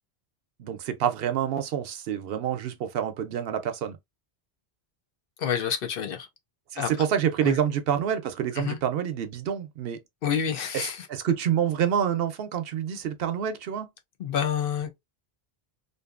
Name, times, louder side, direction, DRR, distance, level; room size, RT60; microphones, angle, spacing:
voice 1, 0.6-4.0 6.7-10.0 10.7-10.8 11.1-13.9, right 9 dB, 70° right, 0.8 m, -27 dB
voice 2, 5.4-6.3 6.8-6.9 7.4-7.6 8.6-8.8 10.2-11.1 14.2-14.9, left 8 dB, 65° left, 0.7 m, -28 dB
2.6 x 2.5 x 2.3 m
omnidirectional pair, 1.1 m